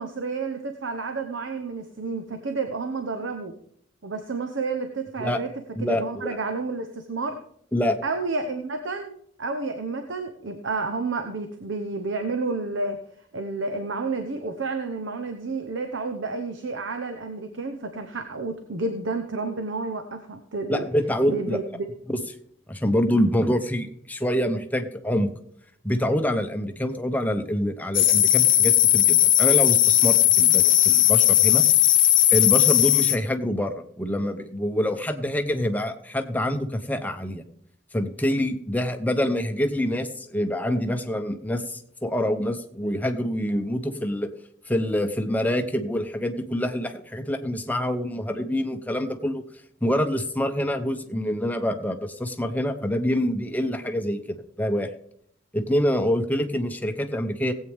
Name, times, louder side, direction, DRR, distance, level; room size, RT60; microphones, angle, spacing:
voice 1, 0.0-3.5 4.0-5.5 5.8-7.4 8.0-13.0 13.3-20.8 21.2-21.8, right 3 dB, 70° right, 6 dB, 0.9 m, -30 dB
voice 2, 5.7-6.4 7.7-8.0 20.7-21.6 22.1-22.2 22.7-25.3 25.8-31.7 32.3-37.4 37.9-44.3 44.7-49.4 49.8-54.9 55.5-57.5, equal, 10° left, 6 dB, 0.8 m, -26 dB
sound 1, 27.9-33.2, left 13 dB, 45° left, 0.8 m, -18 dB
17.5 x 8.3 x 3.5 m, 0.69 s
head